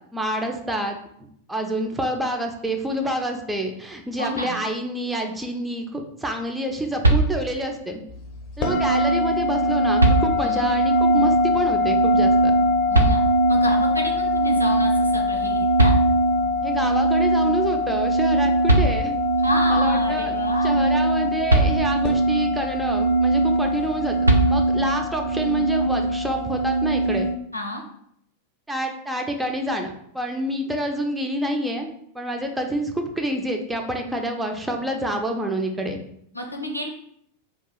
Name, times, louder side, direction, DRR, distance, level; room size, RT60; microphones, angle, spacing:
voice 1, 0.1-1.0 1.5-8.0 8.6-12.6 16.6-19.2 19.7-20.3 20.6-27.3 28.7-31.9 32.1-36.0, right 1 dB, 5° right, 3 dB, 0.4 m, -27 dB
voice 2, 4.2-4.6 10.4-10.7 12.9-13.2 13.5-15.9 19.4-20.9 27.5-27.8 36.3-36.9, left 1 dB, 85° left, 2 dB, 0.5 m, -29 dB
sound 1, 7.0-7.8 9.3-9.4 10.0-10.7 12.9-13.7 15.4-15.5 15.8-16.6 18.3-18.4 18.7-19.4 21.5-22.3 24.2-25.0, right 2 dB, 75° right, 0.4 m, -21 dB
sound 2, 8.6-27.3, equal, 40° left, 0.6 m, -21 dB
2.8 x 2.3 x 3.9 m, 0.70 s
figure-of-eight pair, 90°, 0 cm